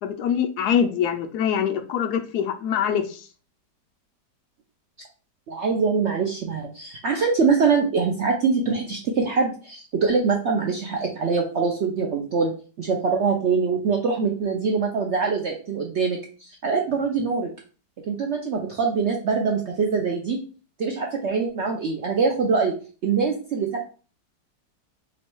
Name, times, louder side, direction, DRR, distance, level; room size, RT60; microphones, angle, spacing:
voice 1, 0.0-3.3, left 8 dB, 75° left, 6 dB, 1.1 m, -24 dB
voice 2, 5.5-12.5 12.8-17.5 18.1-20.4 20.8-22.7 23.0-23.8, right 5 dB, 65° right, 1 dB, 0.6 m, -23 dB
3.1 x 3.1 x 4.4 m, 0.38 s
omnidirectional pair, 1.8 m